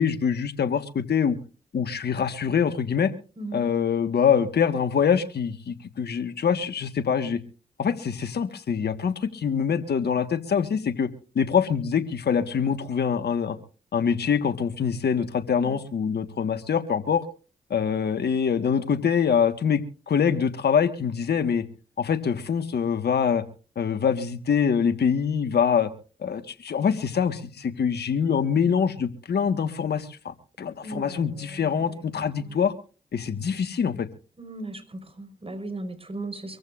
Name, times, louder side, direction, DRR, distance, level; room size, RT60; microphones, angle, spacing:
voice 1, 0.0-1.4 1.7-3.1 3.5-7.4 7.8-11.1 11.3-13.6 13.9-17.2 17.7-21.6 22.0-23.4 23.7-25.9 26.2-32.7 33.1-34.1, left 7 dB, 65° left, 8 dB, 1.5 m, -24 dB
voice 2, 3.4-3.7 15.5-15.8 30.8-32.6 34.4-36.6, right 2 dB, 30° right, 9 dB, 4.6 m, -38 dB
24.5 x 15.0 x 2.5 m, 0.37 s
supercardioid pair, 45°, 18 cm